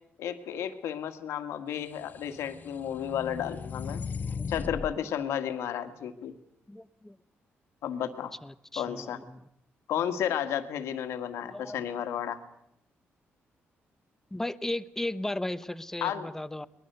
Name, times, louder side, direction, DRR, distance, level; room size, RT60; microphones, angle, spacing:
voice 1, 0.2-4.0 4.5-6.3 7.8-8.3 8.8-9.2 9.9-12.4 16.0-16.3, left 9 dB, 90° left, 7 dB, 1.8 m, -32 dB
sound 1, 2.0-5.0, left 5 dB, 40° left, 0.8 m, -37 dB
voice 2, 6.7-7.2 8.4-9.4 11.5-11.8 14.3-16.7, left 1 dB, 10° left, 14 dB, 0.8 m, -35 dB
24.0 x 21.0 x 6.8 m, 0.79 s
cardioid pair, 105°, 5 cm